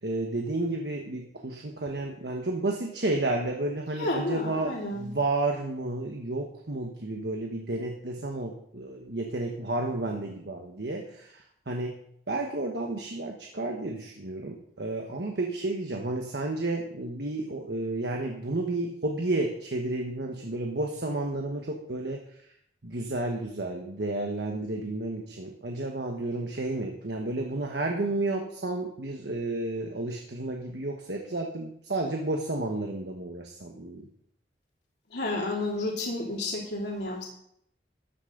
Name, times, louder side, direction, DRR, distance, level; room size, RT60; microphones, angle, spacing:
voice 1, 0.0-11.9 12.3-22.5 22.8-34.1, right 2 dB, 75° right, 2 dB, 1.3 m, -31 dB
voice 2, 4.0-5.1 35.1-37.3, left 2 dB, 75° left, -2 dB, 2.9 m, -31 dB
14.0 x 10.0 x 3.9 m, 0.71 s
head